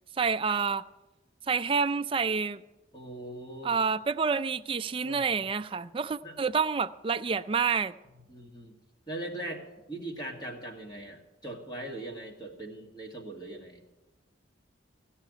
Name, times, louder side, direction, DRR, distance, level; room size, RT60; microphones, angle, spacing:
voice 1, 0.2-0.8 1.5-2.6 3.6-7.9, right 5 dB, 30° right, 0.4 m, -28 dB
voice 2, 2.9-3.8 5.0-5.3 6.2-6.4 8.3-8.7 9.1-13.8, right 1 dB, 20° left, 1.9 m, -40 dB
16.5 x 5.7 x 9.1 m
head